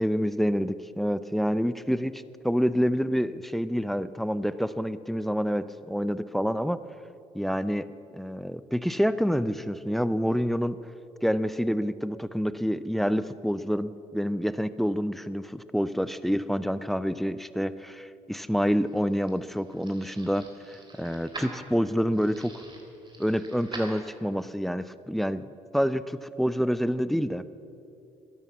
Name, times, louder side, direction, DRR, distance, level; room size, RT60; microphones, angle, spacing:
voice 1, 0.0-6.8 7.3-7.9 8.1-10.8 11.2-22.6 23.2-25.4 25.7-27.4, equal, ahead, 15 dB, 0.6 m, -27 dB
sound 1, 18.8-24.5, right 2 dB, 30° right, 3.2 m, -45 dB
13.0 x 10.5 x 7.5 m, 2.7 s
hypercardioid pair, 50°, 16 cm